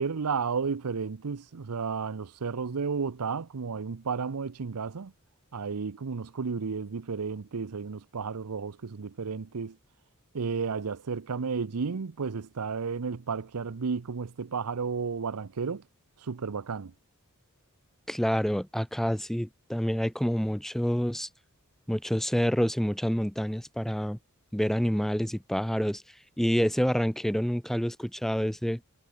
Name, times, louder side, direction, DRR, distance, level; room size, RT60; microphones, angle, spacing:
voice 1, 0.0-5.1 5.5-9.8 10.3-15.8 16.2-16.9, right 5 dB, 85° right, 0.7 m, -32 dB
voice 2, 18.1-21.3 21.9-24.2 24.5-26.0 26.4-28.8, equal, ahead, 1.0 m, -27 dB
head